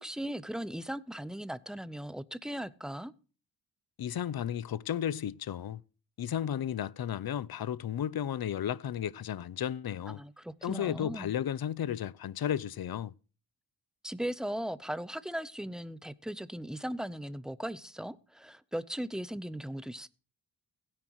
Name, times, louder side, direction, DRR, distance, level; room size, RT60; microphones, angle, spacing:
voice 1, 0.0-3.1 10.1-11.3 14.0-20.1, right 1 dB, ahead, 0.6 m, -38 dB
voice 2, 4.0-5.8 6.2-10.2 10.6-13.1, left 9 dB, 60° left, 0.6 m, -33 dB
16.5 x 10.5 x 3.0 m
wide cardioid pair, 110°, 42 cm